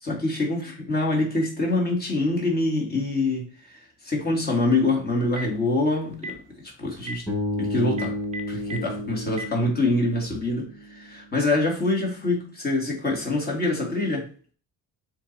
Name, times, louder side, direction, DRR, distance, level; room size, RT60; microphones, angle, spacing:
voice 1, 0.0-6.4 6.6-7.3 7.6-8.2 8.5-14.3, left 2 dB, 30° left, -1 dB, 2.5 m, -25 dB
Telephone, 5.1-5.6 6.1-6.4 7.0-7.1 7.9-8.8 9.3-9.5, right 2 dB, 20° right, 0.9 m, -34 dB
Bass guitar, 7.3-11.4, left 1 dB, 10° left, 3.4 m, -32 dB
7.2 x 3.5 x 4.3 m, 0.42 s
cardioid pair, 130°, 33 cm